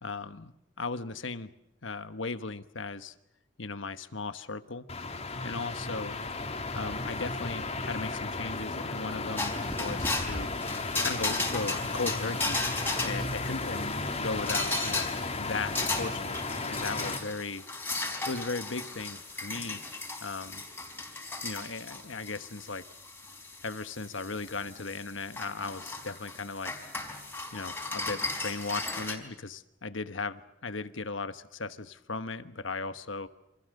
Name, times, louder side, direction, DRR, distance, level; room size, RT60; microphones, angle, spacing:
voice 1, 0.0-1.5 1.8-3.1 3.6-4.9 5.4-6.1 6.7-10.5 11.0-15.1 15.4-16.4 16.7-17.9 18.3-19.8 20.2-20.6 21.4-22.9 23.6-26.7 27.5-33.3, left 3 dB, 80° left, 11 dB, 1.3 m, -37 dB
sound 1, 4.9-17.2, left 3 dB, 35° left, 2.8 m, -34 dB
sound 2, 9.4-29.2, left 2 dB, 10° left, 4.3 m, -36 dB
28.5 x 26.5 x 6.6 m, 0.82 s
head